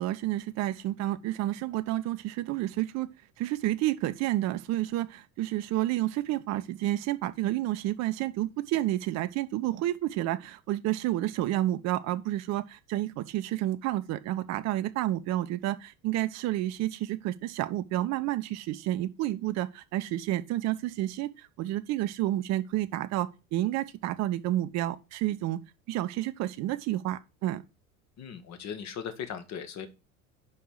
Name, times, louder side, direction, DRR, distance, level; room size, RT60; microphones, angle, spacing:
voice 1, 0.0-3.1 3.4-25.6 25.9-27.6, right 14 dB, 40° right, 0.8 m, -30 dB
voice 2, 28.2-29.9, left 7 dB, 40° left, 1.6 m, -38 dB
5.6 x 5.6 x 6.4 m
figure-of-eight pair, 75°, 42 cm